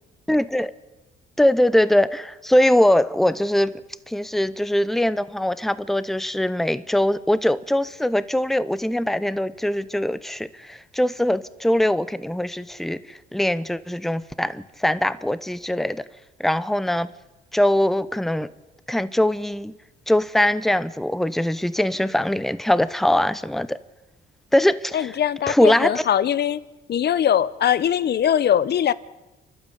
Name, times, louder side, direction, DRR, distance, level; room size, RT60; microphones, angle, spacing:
voice 1, 0.3-0.7 1.4-3.7 4.1-16.1 16.4-17.1 17.5-18.5 18.9-19.7 20.1-23.8 24.5-25.1 25.5-26.0, left 1 dB, ahead, 0.8 m, -22 dB
voice 2, 24.9-26.6 26.9-28.9, left 9 dB, 55° left, 0.8 m, -21 dB
29.5 x 12.0 x 8.4 m
cardioid pair, 90°, 20 cm